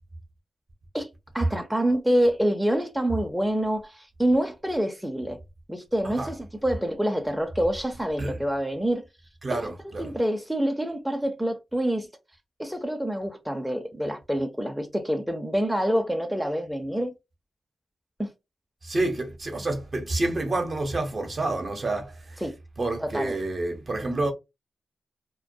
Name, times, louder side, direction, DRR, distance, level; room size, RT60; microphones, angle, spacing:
voice 1, 1.3-5.4 5.7-9.0 9.5-9.7 10.0-12.1 12.6-17.1 18.2-18.3 22.4-22.5 23.0-23.4, right 1 dB, 5° right, 0.5 m, -26 dB
voice 2, 9.4-10.1 18.8-22.4 22.8-24.3, right 2 dB, 45° right, 0.7 m, -28 dB
2.2 x 2.1 x 2.6 m
cardioid pair, 60°, 0 cm